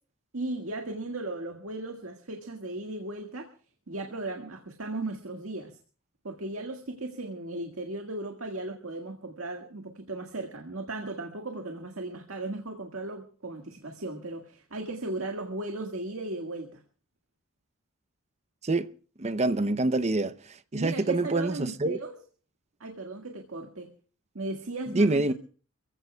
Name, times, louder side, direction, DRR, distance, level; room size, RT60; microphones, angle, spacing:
voice 1, 0.3-3.5 3.9-5.8 6.2-16.8 20.7-22.2 22.8-23.9 24.4-25.3, right 2 dB, 80° right, 1.8 m, -36 dB
voice 2, 19.2-22.0 24.9-25.3, right 2 dB, 30° right, 0.7 m, -26 dB
28.5 x 16.0 x 2.3 m
head